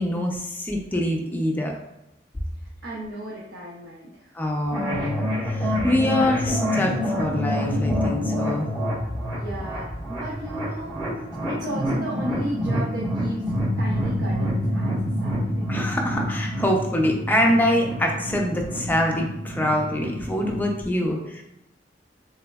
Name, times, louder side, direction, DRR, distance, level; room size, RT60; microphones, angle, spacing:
voice 1, 0.0-1.7 4.3-5.2 5.4-8.7 15.7-21.4, left 1 dB, 10° left, 1 dB, 0.4 m, -24 dB
voice 2, 2.8-4.3 9.3-11.0 11.5-15.7 21.0-21.4, right 1 dB, 80° right, -4 dB, 0.6 m, -35 dB
sound 1, 4.7-20.6, equal, 25° right, 1.5 m, -27 dB
3.4 x 2.9 x 2.3 m, 0.87 s
head